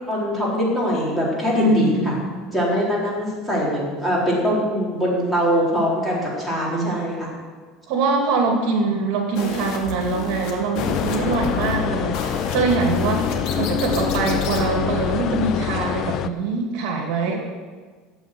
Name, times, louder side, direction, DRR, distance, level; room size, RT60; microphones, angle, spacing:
voice 1, 0.1-2.1 2.5-7.3 17.3-17.4, equal, 10° left, -6 dB, 4.0 m, -22 dB
voice 2, 1.6-2.2 6.7-7.1 7.9-17.3, right 3 dB, 60° right, 1 dB, 2.7 m, -23 dB
sound 1, 9.3-14.6, left 4 dB, 55° left, 2.5 m, -32 dB
sound 2, 10.8-16.3, left 10 dB, 35° left, 0.5 m, -25 dB
13.5 x 8.2 x 7.9 m, 1.5 s
cardioid pair, 170°, 0 cm